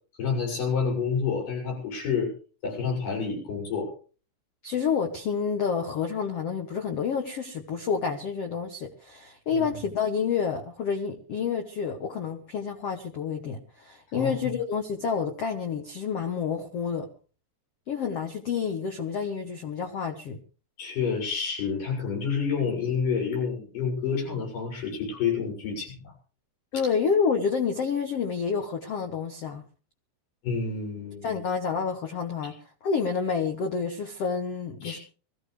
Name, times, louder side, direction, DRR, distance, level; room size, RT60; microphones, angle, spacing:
voice 1, 0.2-2.3 2.6-3.9 9.5-9.9 14.1-14.3 20.8-26.0 30.4-31.4 34.8-35.0, left 5 dB, 50° left, -1 dB, 8.3 m, -29 dB
voice 2, 4.6-17.1 17.9-20.4 26.7-29.6 31.2-32.5 32.8-35.0, left 6 dB, 70° left, 4 dB, 1.4 m, -29 dB
23.0 x 15.0 x 3.4 m, 0.39 s
omnidirectional pair, 4.8 m